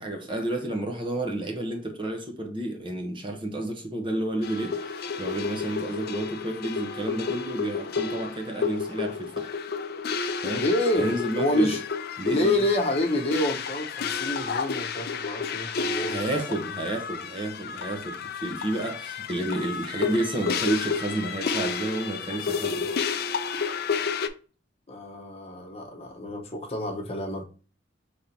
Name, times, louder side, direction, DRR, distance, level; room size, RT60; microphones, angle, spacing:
voice 1, 0.0-9.5 10.4-10.7 11.0-11.8 12.2-12.6 15.9-23.3, right 1 dB, 25° right, 0.8 m, -31 dB
sound 1, 4.4-24.3, left 5 dB, 55° left, 0.5 m, -31 dB
voice 2, 10.5-11.8 12.3-16.2 24.9-27.4, left 1 dB, 35° left, 1.0 m, -28 dB
5.5 x 3.4 x 2.7 m
head